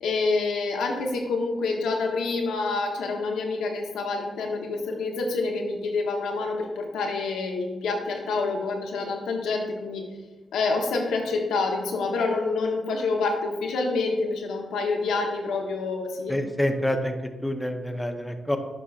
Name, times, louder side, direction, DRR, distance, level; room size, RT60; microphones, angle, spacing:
voice 1, 0.0-10.1 10.5-16.4, left 3 dB, 90° left, 0 dB, 0.9 m, -27 dB
voice 2, 16.3-17.1 17.4-18.6, left 1 dB, 5° left, 5 dB, 0.7 m, -27 dB
9.9 x 4.9 x 2.4 m, 1.2 s
supercardioid pair, 55°, 0 cm